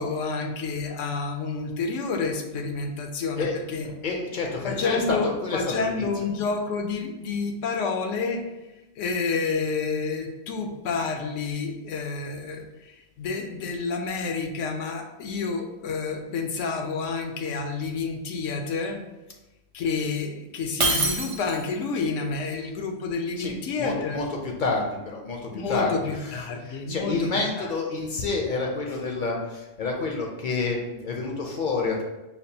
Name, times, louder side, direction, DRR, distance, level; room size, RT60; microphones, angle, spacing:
voice 1, 0.0-3.9 4.6-8.5 9.0-19.0 19.7-24.2 25.5-27.3 27.6-27.7, left 4 dB, 80° left, 4 dB, 0.9 m, -29 dB
voice 2, 3.8-6.3 22.4-22.5 23.4-32.0, left 3 dB, 55° left, 0 dB, 0.6 m, -29 dB
Shatter, 20.8-21.8, right 3 dB, 55° right, 0.3 m, -25 dB
5.1 x 2.4 x 2.7 m, 1.0 s
omnidirectional pair, 1.3 m